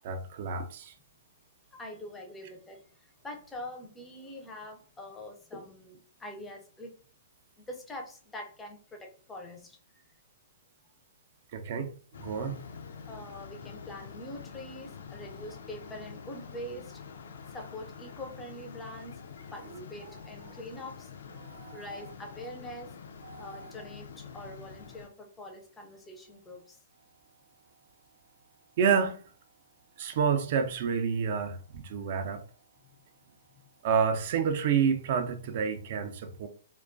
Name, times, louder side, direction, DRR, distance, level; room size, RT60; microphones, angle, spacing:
voice 1, 0.0-0.9 11.5-12.6 21.4-21.8 23.3-23.5 28.8-29.2 30.0-32.4 33.8-36.5, right 6 dB, 50° right, 0.4 m, -29 dB
voice 2, 1.7-7.0 7.6-10.0 10.8-10.9 13.1-17.0 17.5-19.2 19.5-21.1 21.5-23.0 23.4-26.8 33.5-33.6, left 1 dB, 10° left, 0.5 m, -44 dB
sound 1, 12.1-25.1, left 6 dB, 75° left, 0.3 m, -46 dB
2.2 x 2.2 x 2.5 m
hypercardioid pair, 135°, 0 cm